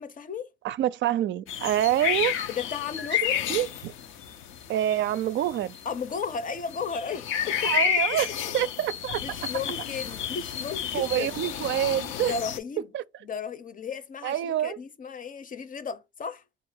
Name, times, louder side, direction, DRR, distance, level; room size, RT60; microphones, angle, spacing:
voice 1, 0.0-0.5 2.5-3.4 5.8-7.7 9.2-11.3 12.2-12.9 13.2-16.4, left 6 dB, 45° left, 0.6 m, -34 dB
voice 2, 0.6-2.3 3.5-3.9 4.7-5.8 7.6-8.3 8.5-9.2 10.9-12.3 12.9-13.0 14.2-14.8, right 12 dB, 70° right, 0.4 m, -26 dB
sound 1, 1.5-12.6, left 10 dB, 85° left, 0.5 m, -31 dB
3.9 x 2.4 x 4.4 m
cardioid pair, 90°, 20 cm